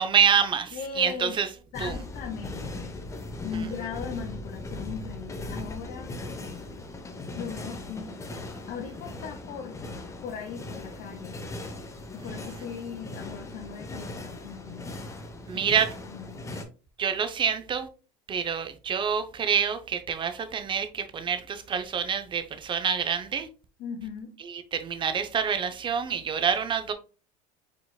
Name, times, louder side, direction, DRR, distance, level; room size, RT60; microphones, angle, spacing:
voice 1, 0.0-1.5 1.8-1.9 15.5-15.9 17.0-17.9 18.3-23.5 24.5-26.9, right 7 dB, 25° right, 0.6 m, -27 dB
voice 2, 0.7-1.4 1.7-3.0 3.4-6.2 7.4-8.1 8.7-9.8 10.2-11.4 12.1-14.9 15.5-15.8 16.1-16.5 23.8-24.4, left 6 dB, 50° left, 0.7 m, -38 dB
sound 1, 1.7-16.6, left 2 dB, 15° left, 0.7 m, -39 dB
4.7 x 3.8 x 2.2 m
supercardioid pair, 110°, 18 cm